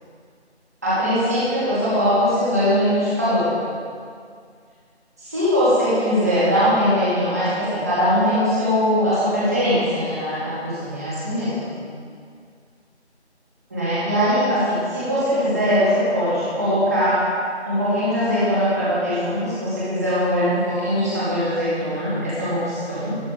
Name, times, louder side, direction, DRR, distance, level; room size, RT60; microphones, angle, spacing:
voice 1, 0.8-3.5 5.2-11.8 13.7-17.2 17.6-23.2, equal, 15° right, -12 dB, 2.9 m, -21 dB
13.5 x 13.0 x 3.6 m, 2.1 s
figure-of-eight pair, 170°, 34 cm